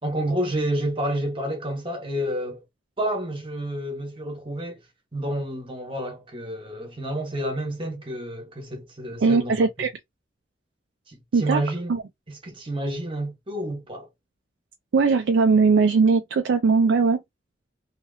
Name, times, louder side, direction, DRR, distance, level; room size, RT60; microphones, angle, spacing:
voice 1, 0.0-2.6 3.0-4.8 5.1-9.5 11.1-11.9 12.3-14.1, right 1 dB, 30° right, 1.1 m, -29 dB
voice 2, 9.2-9.9 11.3-11.6 11.9-12.0 14.9-17.2, right 4 dB, 75° right, 0.4 m, -19 dB
2.8 x 2.8 x 2.6 m
head